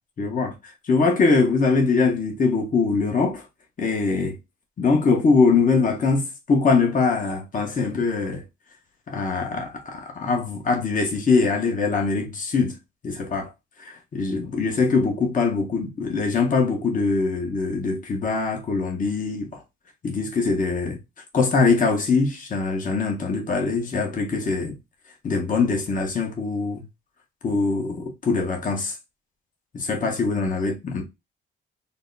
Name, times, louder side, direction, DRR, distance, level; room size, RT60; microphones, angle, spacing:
voice 1, 0.2-0.5 0.9-3.4 3.8-4.4 4.8-8.4 9.1-12.8 13.0-13.5 13.8-19.6 20.0-21.0 21.3-24.8 25.2-26.8 27.4-28.9 29.7-31.0, left 4 dB, 40° left, 1.2 m, -22 dB
3.8 x 2.2 x 3.8 m
cardioid pair, 90°, 20 cm